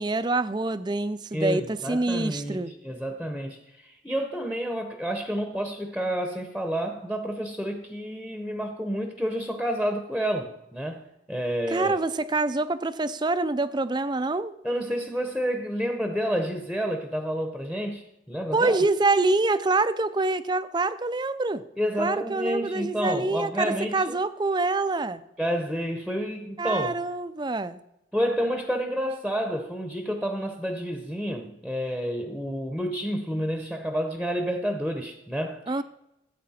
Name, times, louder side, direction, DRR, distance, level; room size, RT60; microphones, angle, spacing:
voice 1, 0.0-2.7 11.7-14.6 18.5-21.6 22.0-25.2 26.6-27.8 35.7-35.8, right 3 dB, 20° right, 0.4 m, -26 dB
voice 2, 1.3-12.0 14.6-18.8 21.8-24.2 25.4-26.9 28.1-35.8, equal, 5° left, 0.9 m, -29 dB
15.5 x 8.5 x 4.3 m
head